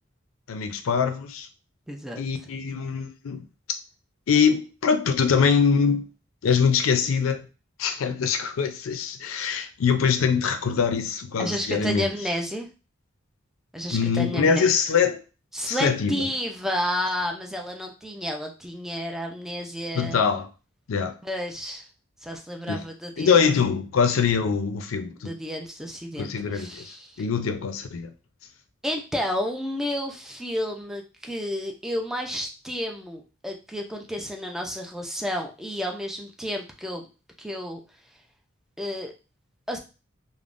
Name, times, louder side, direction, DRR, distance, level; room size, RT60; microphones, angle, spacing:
voice 1, 0.5-1.5 2.2-3.8 4.3-6.1 6.4-7.4 7.8-12.1 13.9-15.2 15.7-16.2 19.9-20.5 20.9-21.1 22.7-22.8 23.2-25.3 26.2-28.1, left 6 dB, 85° left, 0.4 m, -23 dB
voice 2, 1.9-2.2 11.4-12.7 13.7-14.7 15.5-20.2 21.2-21.9 22.2-23.4 25.2-27.2 28.8-37.0 37.4-37.8 38.8-39.1 39.7-39.8, equal, ahead, 0.4 m, -31 dB
3.4 x 2.1 x 2.5 m
head